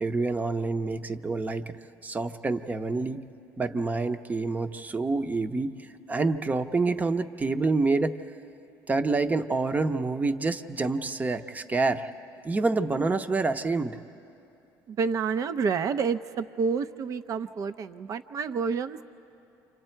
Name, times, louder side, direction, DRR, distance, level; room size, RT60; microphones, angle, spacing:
voice 1, 0.0-1.7 2.0-3.2 3.6-5.7 6.1-8.2 8.9-12.1 12.4-14.0, right 3 dB, 20° right, 9 dB, 0.8 m, -27 dB
voice 2, 14.9-19.0, right 5 dB, 50° right, 12 dB, 0.6 m, -29 dB
29.5 x 26.5 x 4.5 m, 2.8 s
cardioid pair, 105°, 8 cm